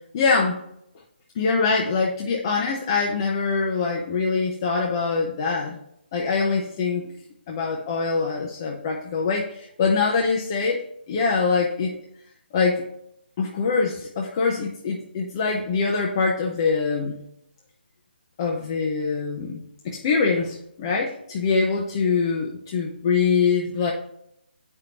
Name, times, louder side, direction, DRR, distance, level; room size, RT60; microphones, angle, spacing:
voice 1, 0.1-0.6 1.4-5.8 6.1-7.1 7.5-10.8 11.1-11.9 12.5-12.9 13.4-17.2 18.4-19.6 19.8-23.9, left 4 dB, 25° left, -1 dB, 0.7 m, -24 dB
8.0 x 5.3 x 2.9 m, 0.75 s
figure-of-eight pair, 160°, 6 cm